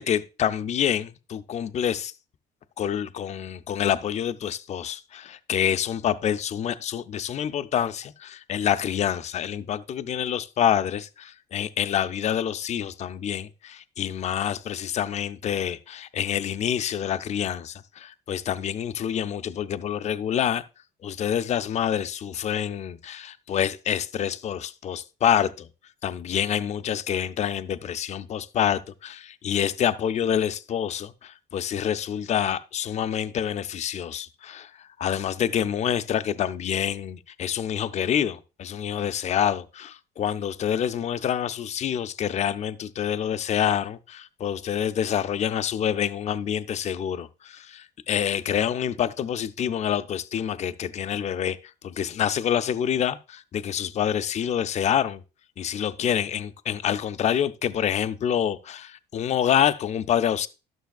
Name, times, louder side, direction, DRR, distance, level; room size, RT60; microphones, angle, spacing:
voice 1, 0.0-2.1 2.8-20.6 21.0-25.7 26.0-51.6 51.8-55.2 55.6-60.5, left 9 dB, 40° left, 0.5 m, -27 dB
12.0 x 6.2 x 2.3 m
cardioid pair, 110°, 17 cm